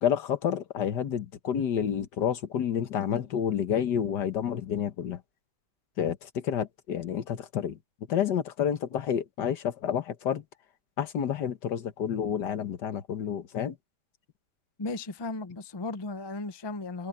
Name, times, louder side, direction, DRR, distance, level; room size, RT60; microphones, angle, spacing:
voice 1, 0.0-5.2 6.0-7.8 8.1-10.4 11.0-13.8, left 8 dB, 75° left, 1.8 m, -29 dB
voice 2, 14.8-17.1, left 3 dB, 25° left, 0.6 m, -35 dB
omnidirectional pair, 1.8 m